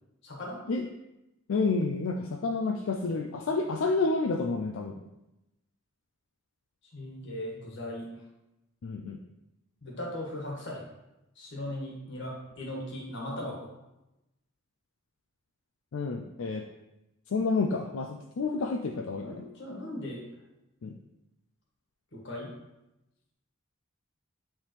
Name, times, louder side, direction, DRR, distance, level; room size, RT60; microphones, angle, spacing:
voice 1, 0.2-0.6 6.9-8.1 9.8-10.8 11.4-13.7 19.2-20.3 22.1-22.5, left 1 dB, 55° left, -2 dB, 1.6 m, -38 dB
voice 2, 1.5-5.0 8.8-9.2 15.9-16.6 17.3-19.4 20.8-21.0, left 3 dB, 75° left, 4 dB, 0.4 m, -29 dB
8.8 x 3.6 x 3.2 m, 0.94 s
head